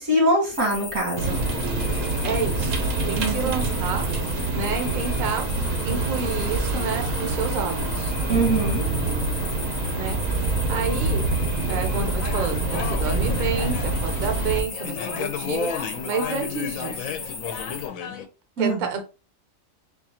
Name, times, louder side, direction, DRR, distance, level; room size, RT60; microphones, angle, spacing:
voice 1, 0.0-1.4 3.2-3.5 8.3-8.8 18.6-18.9, right 1 dB, 85° right, -1 dB, 2.1 m, -23 dB
sound 1, 0.5-17.9, left 3 dB, 40° left, 0.8 m, -36 dB
sound 2, 1.2-14.6, right 3 dB, 70° right, 1.1 m, -26 dB
voice 2, 2.2-2.8 3.1-4.1 4.5-5.5 5.8-8.1 9.9-10.2 10.7-11.3 11.7-17.1 18.6-19.0, right 5 dB, 50° right, 5 dB, 0.7 m, -29 dB
sound 3, 12.2-18.2, left 7 dB, 80° left, 1.0 m, -33 dB
4.4 x 2.4 x 2.8 m, 0.31 s
omnidirectional pair, 1.4 m